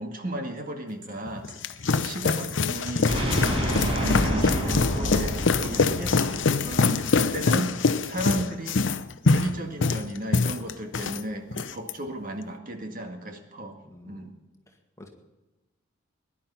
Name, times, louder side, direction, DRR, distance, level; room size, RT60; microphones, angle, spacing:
voice 1, 0.0-3.1 3.5-8.8 9.2-14.4, right 1 dB, 45° right, 4 dB, 2.0 m, -35 dB
sound 1, 0.6-0.7 1.0-1.1 1.5-1.6 1.9-2.0 2.4-2.5 2.9-3.0 3.3-3.4 3.8-3.9 4.2-4.3 4.7-4.8 5.2-5.3 5.6-5.7 6.1-6.2 6.6-6.7 7.0-7.1 7.5-7.6, right 3 dB, 60° right, 6.3 m, -44 dB
sound 2, 1.3-11.2 11.5-11.9, left 4 dB, 65° left, 0.7 m, -24 dB
sound 3, 3.1-7.0, equal, 30° right, 5.2 m, -28 dB
voice 2, 13.8-14.4 15.0-15.1, left 1 dB, 15° left, 3 dB, 1.9 m, -48 dB
19.5 x 11.0 x 5.7 m, 1.1 s
head